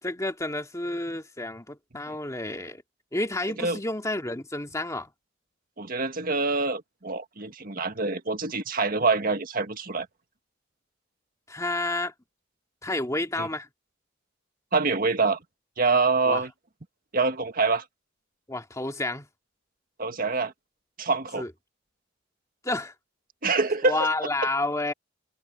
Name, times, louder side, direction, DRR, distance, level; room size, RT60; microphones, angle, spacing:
voice 1, 0.0-2.8 3.1-5.1 11.5-12.1 12.8-13.7 16.2-16.4 18.5-19.3 21.4-21.5 22.6-22.9 23.8-24.9, left 2 dB, 15° left, 2.1 m, -30 dB
voice 2, 5.8-10.1 13.4-13.5 14.7-15.4 15.8-16.5 17.1-17.8 20.0-20.5 21.0-21.5 23.4-24.0, right 4 dB, 50° right, 1.7 m, -25 dB
head